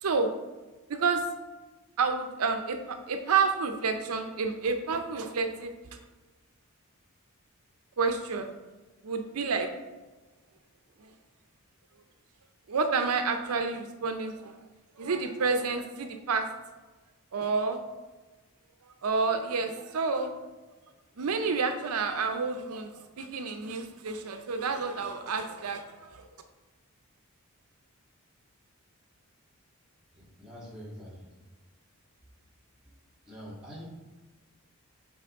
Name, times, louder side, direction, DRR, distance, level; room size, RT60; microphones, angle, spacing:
voice 1, 0.9-1.2 2.0-5.7 8.0-8.5 9.0-9.7 11.0-11.1 12.7-14.6 15.0-16.5 17.3-17.8 19.0-20.3 21.2-26.3, right 4 dB, 80° right, 6 dB, 0.6 m, -29 dB
voice 2, 30.1-31.5 32.8-32.9 33.3-33.9, equal, 5° right, -7 dB, 1.8 m, -45 dB
6.8 x 4.2 x 3.6 m, 1.2 s
head